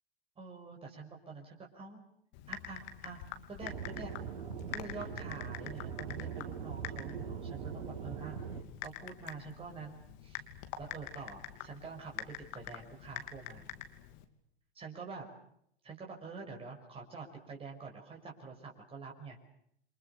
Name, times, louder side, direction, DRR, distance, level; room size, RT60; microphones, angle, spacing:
voice 1, 0.4-2.0 2.5-3.2 3.5-4.2 4.7-8.4 8.8-10.4 10.8-13.7 14.7-15.3 15.8-19.5, right 4 dB, 20° right, 0 dB, 5.9 m, -47 dB
Typing, 2.3-14.2, left 10 dB, 45° left, 3.1 m, -46 dB
Aircraft / Engine, 3.6-8.6, right 7 dB, 55° right, 5.3 m, -41 dB
28.5 x 26.5 x 6.9 m, 0.72 s
figure-of-eight pair, 95°, 30 cm